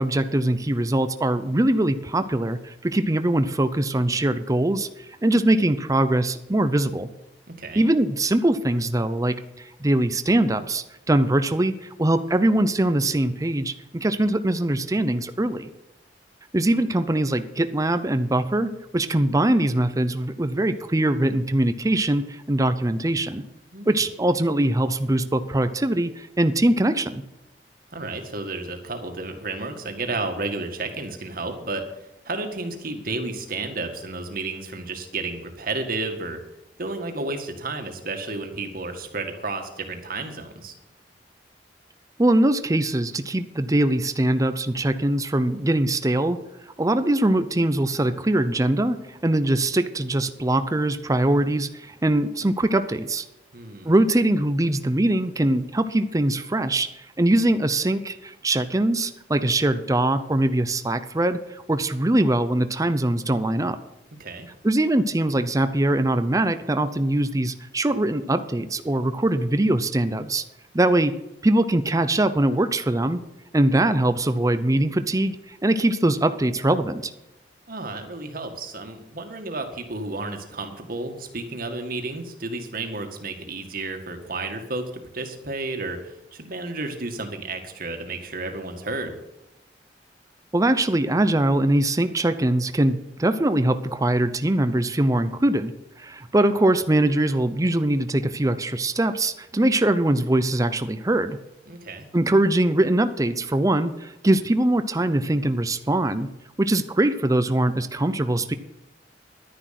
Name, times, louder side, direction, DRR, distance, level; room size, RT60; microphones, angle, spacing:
voice 1, 0.0-4.9 5.2-7.1 7.8-15.7 16.5-23.4 23.9-27.2 42.2-46.4 46.8-49.0 49.2-53.2 53.8-56.9 57.2-63.8 64.6-70.4 70.7-71.1 71.4-73.2 73.5-77.1 90.5-95.7 96.0-101.4 102.1-106.3 106.6-108.5, right 1 dB, 20° right, 10 dB, 0.6 m, -22 dB
voice 2, 23.7-24.1 27.9-31.9 32.3-36.4 36.8-40.7 53.5-53.9 64.2-64.5 77.7-89.2 101.7-102.1, right 3 dB, 55° right, 5 dB, 1.9 m, -32 dB
11.5 x 10.0 x 5.9 m, 0.93 s
head